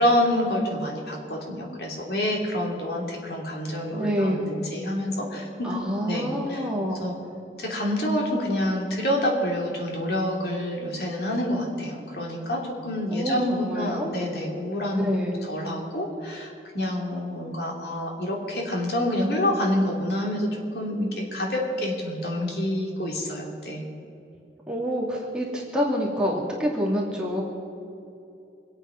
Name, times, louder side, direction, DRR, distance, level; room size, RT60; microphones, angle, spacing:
voice 1, 0.0-5.7 6.1-6.7 7.0-7.1 7.6-15.1 15.4-23.8, left 1 dB, 65° left, -1 dB, 2.9 m, -27 dB
voice 2, 3.9-4.5 5.6-7.1 13.1-14.1 15.0-15.4 24.7-27.4, equal, 5° right, -4 dB, 2.4 m, -27 dB
25.0 x 8.9 x 5.9 m, 2.8 s
head